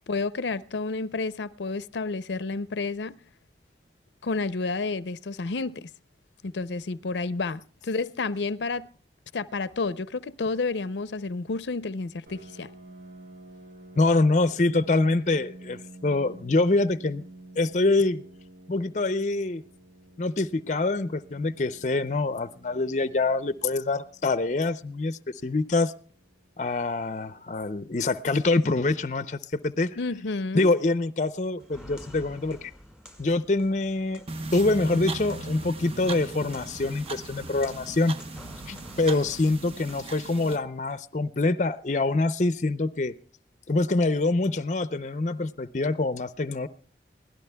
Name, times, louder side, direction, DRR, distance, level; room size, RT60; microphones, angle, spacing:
voice 1, 0.1-3.2 4.2-5.9 6.4-8.9 9.3-12.7 30.0-30.7 38.7-38.8, left 3 dB, 90° left, 0.6 m, -30 dB
Piano, 12.3-27.7, right 2 dB, 55° right, 1.4 m, -50 dB
voice 2, 13.9-17.2 17.6-18.2 18.7-19.6 20.2-25.9 26.6-29.9 30.5-32.7 33.2-34.2 34.5-38.1 38.7-43.1 43.7-46.7, left 2 dB, 45° left, 0.5 m, -25 dB
Walk footsteps, 31.6-40.4, equal, 5° right, 2.0 m, -49 dB
sound 1, 34.3-40.6, right 3 dB, 35° right, 0.8 m, -38 dB
23.0 x 16.5 x 2.2 m
head